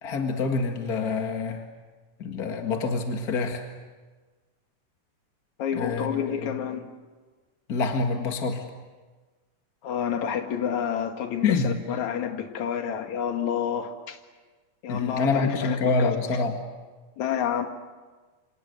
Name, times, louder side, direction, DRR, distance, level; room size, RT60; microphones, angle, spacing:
voice 1, 0.0-1.6 2.2-3.7 5.7-6.1 7.7-8.6 11.4-11.7 14.9-16.6, left 4 dB, 40° left, 4 dB, 1.5 m, -26 dB
voice 2, 5.6-6.8 9.8-14.2 14.8-16.1 17.2-17.7, left 8 dB, 55° left, 5 dB, 3.0 m, -29 dB
28.5 x 26.0 x 7.9 m, 1.3 s
omnidirectional pair, 4.2 m